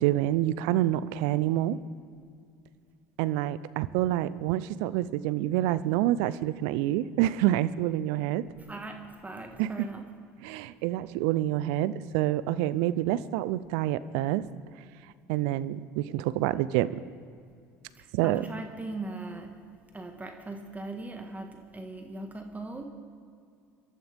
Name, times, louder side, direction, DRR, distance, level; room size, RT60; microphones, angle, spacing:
voice 1, 0.0-1.8 3.2-8.5 9.6-9.9 10.4-14.4 15.3-17.0 18.1-18.5, right 14 dB, 70° right, 17 dB, 0.5 m, -27 dB
voice 2, 8.6-10.0 18.0-19.5 19.9-22.8, right 2 dB, 15° right, 4 dB, 1.6 m, -39 dB
24.0 x 13.0 x 3.5 m, 2.3 s
hypercardioid pair, 70°, 9 cm